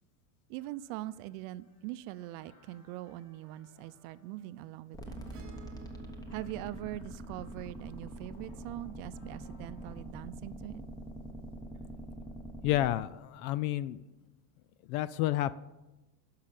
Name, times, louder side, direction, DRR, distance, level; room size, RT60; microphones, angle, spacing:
voice 1, 0.5-5.3 6.3-10.9, right 15 dB, 55° right, 15 dB, 0.6 m, -42 dB
sound 1, 0.6-10.1, left 1 dB, 90° left, 3.1 m, -66 dB
sound 2, 4.9-13.0, right 1 dB, 10° left, 0.9 m, -44 dB
Acoustic guitar / Strum, 5.3-9.9 11.8-11.9, right 2 dB, 30° right, 1.3 m, -58 dB
voice 2, 12.6-14.0 14.9-15.5, left 14 dB, 65° left, 16 dB, 0.5 m, -30 dB
11.5 x 5.8 x 7.5 m, 1.1 s
supercardioid pair, 150°, 47 cm